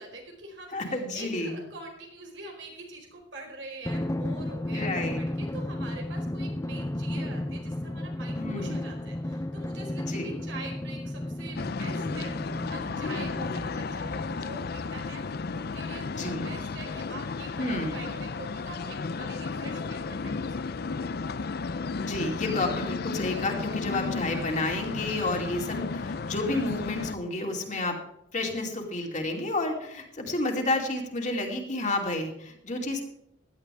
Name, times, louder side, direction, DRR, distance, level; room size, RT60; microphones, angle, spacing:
voice 1, 0.0-21.1, right 2 dB, 85° right, 1 dB, 4.7 m, -44 dB
voice 2, 0.7-1.7 4.7-5.2 8.4-8.8 10.0-10.4 16.2-16.5 17.6-18.0 22.0-28.0 28.3-33.0, left 2 dB, 45° left, 1 dB, 2.7 m, -30 dB
Drum, 3.9-14.9, left 1 dB, 15° left, 0.6 m, -34 dB
sound 1, 11.6-27.1, left 4 dB, 60° left, 0.5 m, -33 dB
16.5 x 11.5 x 3.5 m, 0.82 s
head